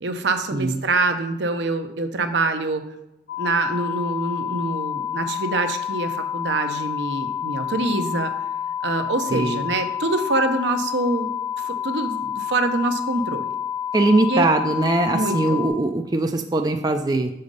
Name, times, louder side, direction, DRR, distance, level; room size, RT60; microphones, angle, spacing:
voice 1, 0.0-2.8 3.4-8.3 8.8-11.3 11.6-13.5 14.3-14.5 15.1-15.6, right 2 dB, 70° right, 7 dB, 0.7 m, -25 dB
sound 1, 3.3-15.7, left 9 dB, 65° left, 1.6 m, -29 dB
voice 2, 13.9-17.3, right 2 dB, 20° right, 4 dB, 0.4 m, -21 dB
6.7 x 4.0 x 5.3 m, 0.91 s
head